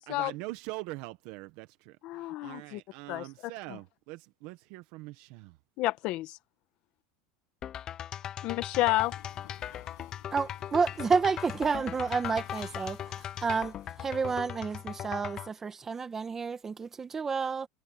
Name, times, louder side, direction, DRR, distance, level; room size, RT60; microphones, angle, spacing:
voice 1, 0.1-5.6, right 20 dB, 60° right, 1.3 m, -43 dB
voice 2, 2.0-2.8 3.1-3.3 5.8-6.4 8.4-9.1, left 18 dB, 50° left, 1.3 m, -30 dB
sound 1, 7.6-15.5, left 10 dB, 30° left, 0.5 m, -39 dB
sound 2, 9.0-14.4, left 19 dB, 85° left, 6.3 m, -54 dB
voice 3, 10.3-17.7, right 5 dB, 15° right, 1.6 m, -30 dB
supercardioid pair, 145°, 2 cm